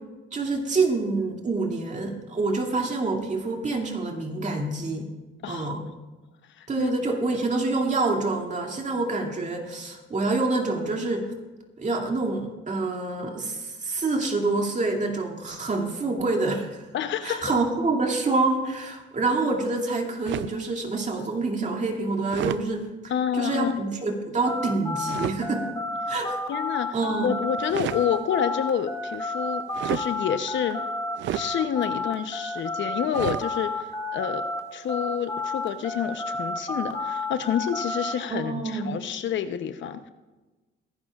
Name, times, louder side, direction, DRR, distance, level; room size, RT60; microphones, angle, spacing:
voice 1, 0.3-5.1 5.5-5.8 6.7-11.3 11.8-16.9 17.2-22.9 23.3-25.7 26.1-26.4 26.9-27.4 38.3-38.9, right 3 dB, 40° right, 2 dB, 2.5 m, -27 dB
voice 2, 6.6-6.9 16.9-17.5 23.1-23.8 26.5-27.0 27.2-30.8 31.3-34.4 34.7-40.1, left 8 dB, 70° left, 10 dB, 0.8 m, -28 dB
sound 1, 20.2-20.6 22.3-22.7 25.1-25.4 27.6-28.1 29.7-30.1 31.2-31.5 33.1-33.5, right 12 dB, 70° right, 0.5 m, -30 dB
sound 2, 24.5-34.6 34.9-38.1, left 2 dB, 15° left, 2.0 m, -31 dB
22.5 x 11.5 x 2.4 m, 1.2 s
cardioid pair, 90°, 20 cm